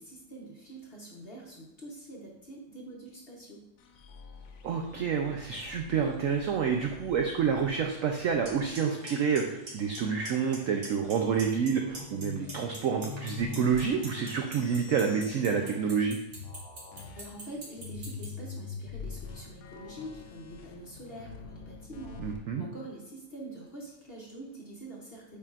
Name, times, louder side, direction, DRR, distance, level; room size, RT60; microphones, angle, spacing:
voice 1, 0.0-3.7 17.2-22.2 22.6-25.4, right 1 dB, 45° left, -2 dB, 0.9 m, -45 dB
sound 1, 3.8-16.1 16.3-22.4, left 6 dB, 90° left, 1.3 m, -46 dB
voice 2, 4.6-16.2 22.2-22.6, right 6 dB, 75° right, 3 dB, 0.7 m, -28 dB
Clock, 8.4-8.5 8.7-9.1 9.3-10.0 10.2-10.6 10.8-11.7 11.9-18.2, right 3 dB, 55° right, 2.2 m, -42 dB
8.5 x 4.7 x 2.4 m, 0.89 s
omnidirectional pair, 1.9 m